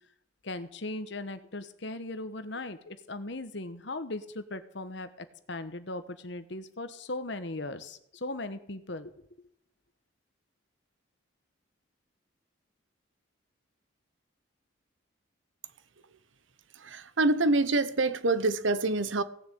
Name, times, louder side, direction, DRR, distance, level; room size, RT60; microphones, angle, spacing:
voice 1, 0.4-9.1, left 2 dB, 60° left, 1.2 m, -38 dB
voice 2, 16.7-19.2, right 2 dB, 70° right, 0.9 m, -26 dB
17.0 x 6.8 x 8.5 m
head